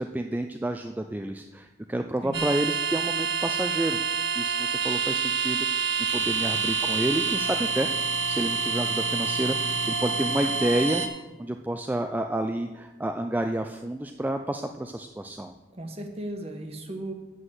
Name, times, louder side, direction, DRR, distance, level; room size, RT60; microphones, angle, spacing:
voice 1, 0.0-4.0 4.3-11.0 11.4-15.5, right 1 dB, 10° right, 5 dB, 0.3 m, -30 dB
voice 2, 2.2-2.5 15.7-17.1, right 1 dB, 35° right, 4 dB, 1.2 m, -36 dB
sound 1, 2.3-11.1, right 5 dB, 85° right, 1.2 m, -27 dB
7.7 x 6.2 x 7.9 m, 1.1 s
head